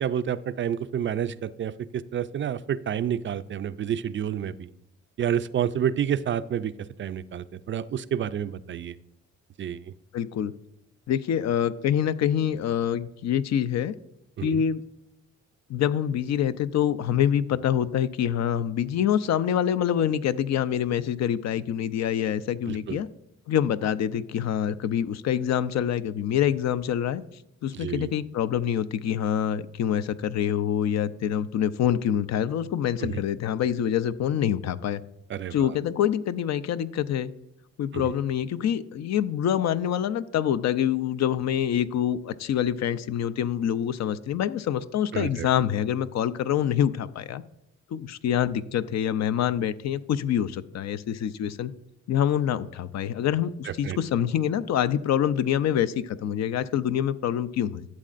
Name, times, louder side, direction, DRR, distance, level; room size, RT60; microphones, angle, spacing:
voice 1, 0.0-4.7 5.2-6.7 7.0-9.0 9.6-9.9 14.4-14.6 22.7-23.0 27.7-28.1 33.0-33.2 35.3-35.7 37.9-38.1 45.1-45.5 53.7-54.0, right 9 dB, 40° right, 14 dB, 0.4 m, -29 dB
voice 2, 10.1-10.5 11.1-14.0 14.4-14.8 15.7-23.1 23.5-27.2 27.6-35.0 35.5-37.3 37.8-47.4 47.9-51.7 52.1-57.9, left 9 dB, 60° left, 14 dB, 0.5 m, -26 dB
12.5 x 7.4 x 2.5 m, 0.83 s
cardioid pair, 90°, 30 cm